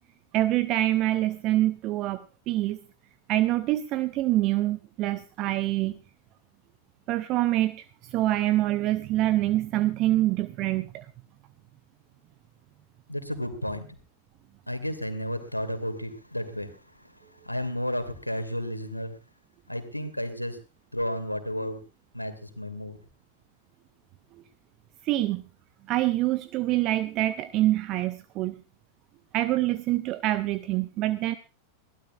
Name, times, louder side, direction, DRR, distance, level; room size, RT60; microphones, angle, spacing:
voice 1, 0.3-2.8 3.3-6.0 7.1-11.1 25.0-25.4 25.9-28.5 29.3-31.3, right 15 dB, 40° right, 14 dB, 0.7 m, -25 dB
voice 2, 13.1-13.9 14.7-16.7 17.4-19.2 19.7-20.6 20.9-21.8 22.1-23.0, equal, 90° left, 8 dB, 2.2 m, -32 dB
22.0 x 15.5 x 2.5 m, 0.32 s
figure-of-eight pair, 90°, 0 cm